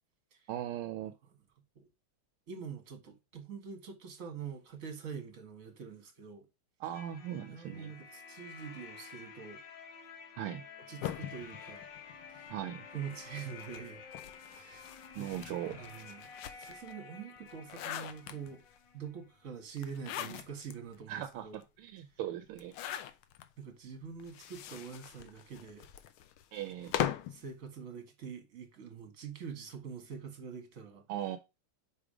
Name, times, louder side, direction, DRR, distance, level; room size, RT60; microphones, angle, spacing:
voice 1, 0.5-1.1 6.8-7.9 10.4-10.6 12.5-12.9 15.1-15.8 21.1-22.7 26.5-26.9 31.1-31.4, right 11 dB, 80° right, 1.5 m, -39 dB
voice 2, 2.5-6.5 7.5-9.6 10.9-11.9 12.3-12.5 12.9-14.0 14.5-14.9 15.2-15.4 15.8-16.3 16.6-18.6 18.9-21.6 23.6-25.9 27.3-31.1, right 6 dB, 40° right, 1.9 m, -45 dB
sound 1, 6.9-19.6, left 6 dB, 60° left, 1.7 m, -51 dB
sound 2, 11.0-12.6 13.5-16.9 17.4-18.8 19.8-20.7 21.2-21.3 21.5-21.6 22.5-23.5 24.2-27.4, left 11 dB, 80° left, 1.5 m, -40 dB
5.2 x 4.9 x 5.0 m
omnidirectional pair, 2.4 m